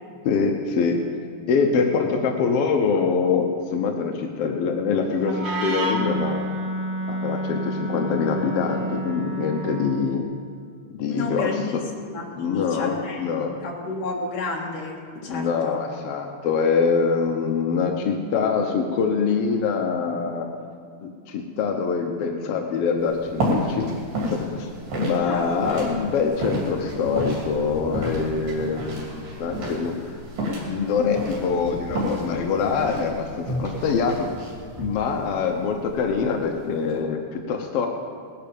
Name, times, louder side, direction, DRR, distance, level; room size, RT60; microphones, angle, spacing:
voice 1, 0.2-1.0 1.5-3.5 3.7-6.4 7.1-10.2 11.0-11.5 12.4-13.5 15.2-20.4 21.0-23.9 24.3-24.7 25.0-29.9 30.7-34.3 34.8-37.9, left 5 dB, 70° left, 3 dB, 1.4 m, -24 dB
Wind instrument woodwind instrument, 5.2-10.1, right 1 dB, 55° right, 1.9 m, -29 dB
voice 2, 11.1-11.8 12.1-15.8 25.2-25.6, left 3 dB, 50° left, -1 dB, 2.5 m, -31 dB
sound 1, 23.0-37.0, right 1 dB, 85° right, 4.7 m, -31 dB
18.5 x 10.5 x 5.3 m, 2.1 s
omnidirectional pair, 3.9 m